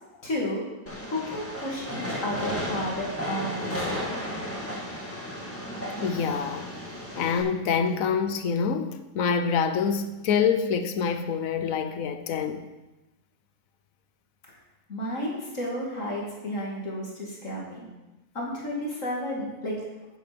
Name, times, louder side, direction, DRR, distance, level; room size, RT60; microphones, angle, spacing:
voice 1, 0.2-0.6 1.1-4.2 14.9-17.9 18.3-19.8, left 1 dB, 70° left, 2.9 m, -32 dB
Train, 0.9-7.4, equal, 10° left, 1.9 m, -34 dB
voice 2, 6.0-6.7 7.2-12.7, left 6 dB, 85° left, 1.2 m, -26 dB
10.0 x 9.2 x 5.3 m
omnidirectional pair, 1.4 m